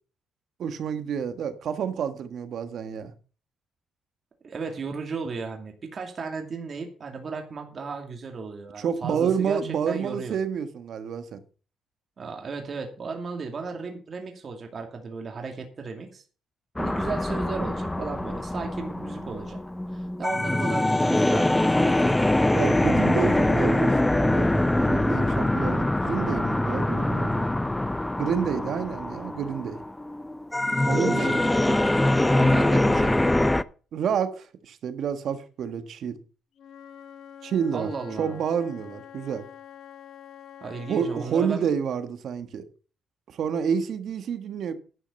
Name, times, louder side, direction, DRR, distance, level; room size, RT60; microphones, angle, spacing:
voice 1, 0.6-3.1 8.8-11.4 22.5-27.5 28.2-29.8 30.9-31.3 33.9-36.2 37.4-37.9 38.2-39.4 40.9-42.6 43.3-44.7, right 7 dB, 65° right, 1.5 m, -29 dB
voice 2, 4.4-9.6 9.9-10.4 12.2-16.2 16.8-19.6 19.9-22.1 30.9-31.8 32.3-33.5 37.7-38.4 40.6-41.7, right 4 dB, 45° right, 2.5 m, -35 dB
sound 1, 16.8-33.6, left 1 dB, 10° left, 0.5 m, -23 dB
Wind instrument woodwind instrument, 36.6-41.4, left 9 dB, 70° left, 1.1 m, -46 dB
11.5 x 6.0 x 7.0 m
cardioid pair, 90°, 0 cm